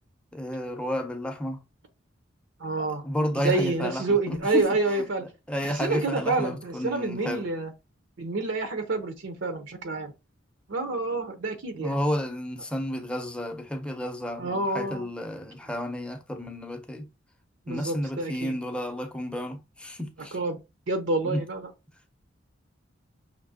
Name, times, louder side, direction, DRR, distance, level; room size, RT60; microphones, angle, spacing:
voice 1, 0.3-1.6 2.8-4.7 5.5-7.4 11.8-17.1 17.7-20.4 21.2-21.4, left 1 dB, 5° left, 0.6 m, -31 dB
voice 2, 2.6-3.0 3.3-5.3 5.6-7.7 8.2-10.1 10.7-12.0 14.4-15.1 17.7-18.5 20.3-20.6 20.9-21.7, right 3 dB, 75° right, 0.7 m, -28 dB
5.8 x 2.8 x 2.7 m
head